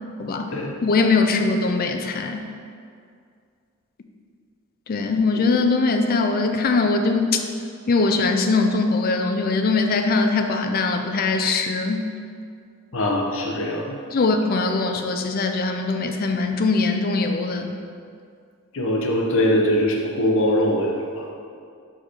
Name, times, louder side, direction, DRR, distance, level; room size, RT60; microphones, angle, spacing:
voice 1, 0.2-0.5 0.8-2.4 4.9-7.4 7.9-12.1 14.1-17.7, left 3 dB, 45° left, 5 dB, 0.4 m, -21 dB
voice 2, 12.9-14.0 18.7-21.3, left 1 dB, 60° left, 0 dB, 0.8 m, -22 dB
4.9 x 4.7 x 4.4 m, 2.3 s
head